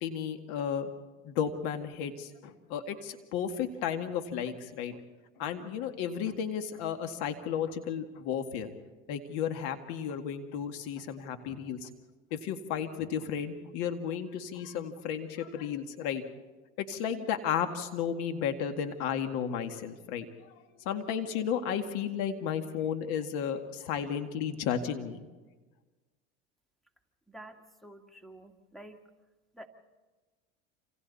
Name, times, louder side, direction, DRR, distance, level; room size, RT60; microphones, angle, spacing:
voice 1, 0.0-0.9 1.2-5.0 5.4-8.7 9.1-11.9 12.3-16.2 16.8-20.3 20.8-25.2, left 8 dB, 65° left, 7 dB, 2.1 m, -33 dB
voice 2, 27.3-29.0 29.5-29.7, right 1 dB, ahead, 5 dB, 2.3 m, -49 dB
28.0 x 27.5 x 4.2 m, 1.3 s
hypercardioid pair, 85°, 38 cm